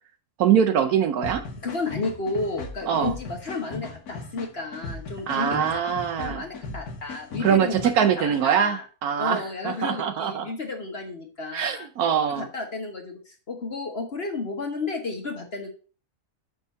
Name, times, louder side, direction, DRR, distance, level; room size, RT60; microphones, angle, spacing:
voice 1, 0.4-1.4 2.9-3.1 5.3-6.4 7.4-10.5 11.5-12.5, right 8 dB, 80° right, 7 dB, 1.2 m, -23 dB
sound 1, 1.2-8.4, left 4 dB, 85° left, 1.7 m, -38 dB
voice 2, 1.6-5.6 6.2-7.9 8.2-8.8 9.2-11.9 12.3-15.7, left 3 dB, 45° left, 2 dB, 1.3 m, -32 dB
6.2 x 4.5 x 5.5 m, 0.37 s
omnidirectional pair, 1.6 m